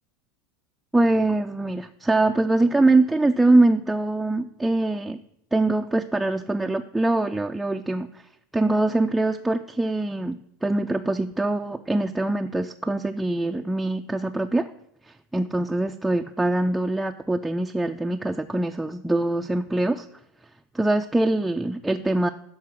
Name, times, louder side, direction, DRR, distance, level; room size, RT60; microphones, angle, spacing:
voice 1, 0.9-5.2 5.5-8.2 8.5-14.7 15.1-20.1 20.7-22.3, right 2 dB, 5° right, 4 dB, 0.4 m, -23 dB
11.5 x 3.9 x 6.1 m, 0.76 s
hypercardioid pair, 90°, 0 cm